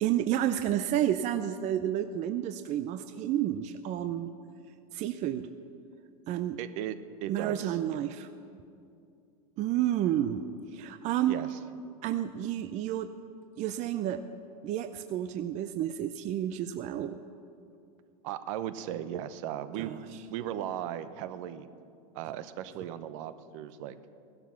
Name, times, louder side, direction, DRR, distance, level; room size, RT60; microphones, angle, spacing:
voice 1, 0.0-4.3 4.9-5.5 6.3-6.6 7.3-8.3 9.6-10.5 10.7-11.4 12.0-13.1 13.6-14.2 14.6-17.2 19.8-20.0, right 11 dB, 40° right, 10 dB, 0.6 m, -30 dB
voice 2, 6.6-8.0 11.3-11.6 18.2-21.7 22.1-24.1, right 10 dB, 60° right, 12 dB, 0.9 m, -37 dB
16.0 x 12.0 x 5.9 m, 2.5 s
hypercardioid pair, 110°, 19 cm